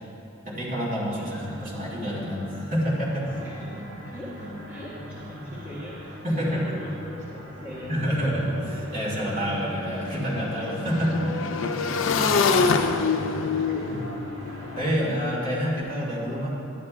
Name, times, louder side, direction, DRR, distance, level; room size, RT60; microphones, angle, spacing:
voice 1, 0.5-3.4 6.2-6.6 7.9-11.2 13.9-14.0 14.8-16.5, equal, 40° right, -7 dB, 1.9 m, -27 dB
sound 1, 1.3-14.8, left 1 dB, 70° right, 0.9 m, -40 dB
voice 2, 3.4-8.2 13.5-13.9 14.6-14.8, equal, 10° right, -10 dB, 1.2 m, -40 dB
Motorcycle / Engine, 8.2-8.3 8.6-15.7, left 5 dB, 80° left, 0.4 m, -27 dB
11.0 x 9.7 x 2.5 m, 2.8 s
head